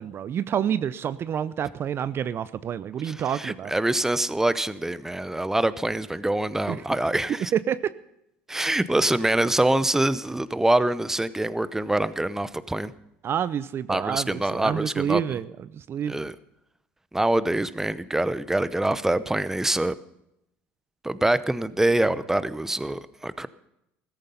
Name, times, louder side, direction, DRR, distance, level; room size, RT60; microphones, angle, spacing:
voice 1, 0.0-3.7 6.7-6.8 7.5-7.9 8.6-8.7 13.2-16.2, right 9 dB, 45° right, 16 dB, 0.6 m, -28 dB
voice 2, 3.0-7.5 8.5-12.9 13.9-15.2 16.1-16.3 17.1-19.9 21.0-23.5, right 1 dB, 5° right, 15 dB, 0.8 m, -25 dB
15.5 x 14.0 x 5.5 m, 0.82 s
hypercardioid pair, 75°, 6 cm